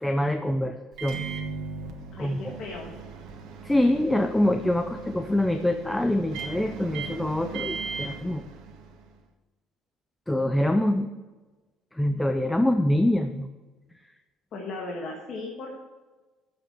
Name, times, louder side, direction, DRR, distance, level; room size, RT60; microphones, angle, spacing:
voice 1, 0.0-1.2 2.2-2.6 3.6-8.4 10.3-11.1 11.9-13.5, left 1 dB, 5° left, 7 dB, 0.5 m, -25 dB
Microwave oven, 0.9-9.1, right 5 dB, 70° right, 1.4 m, -38 dB
voice 2, 2.1-2.9 14.5-15.7, left 3 dB, 45° left, -1 dB, 1.6 m, -36 dB
9.1 x 7.1 x 6.5 m, 1.2 s
cardioid pair, 155°, 0 cm